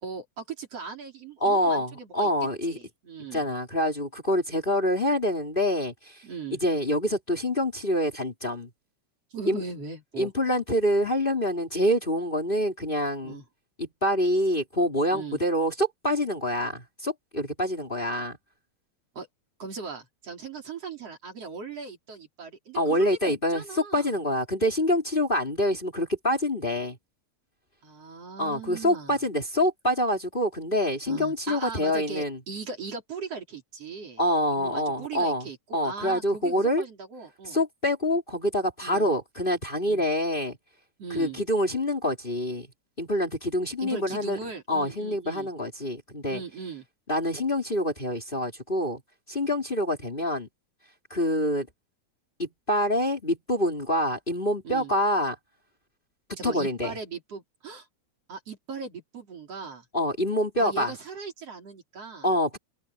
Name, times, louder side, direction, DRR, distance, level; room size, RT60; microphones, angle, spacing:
voice 1, 0.0-2.3 2.7-3.4 6.2-6.6 9.3-10.3 13.2-13.4 15.1-15.4 19.1-19.3 19.6-24.1 27.8-29.2 31.1-34.2 34.5-37.6 38.8-39.1 39.9-40.0 41.0-41.4 43.8-45.5 46.3-46.8 54.6-54.9 56.4-57.9 58.3-59.8 60.6-62.3, right 5 dB, 55° right, 4.6 m, -39 dB
voice 2, 1.4-2.8 3.3-6.2 6.5-8.7 9.5-9.6 10.2-13.4 13.8-18.4 22.7-27.0 28.4-32.4 34.2-35.5 35.7-36.8 37.4-40.6 41.1-42.7 43.0-44.4 44.7-46.4 47.1-49.0 49.3-50.5 51.1-51.7 52.4-55.4 56.4-56.9 59.9-60.9 62.2-62.6, equal, 15° left, 3.6 m, -26 dB
omnidirectional pair, 3.3 m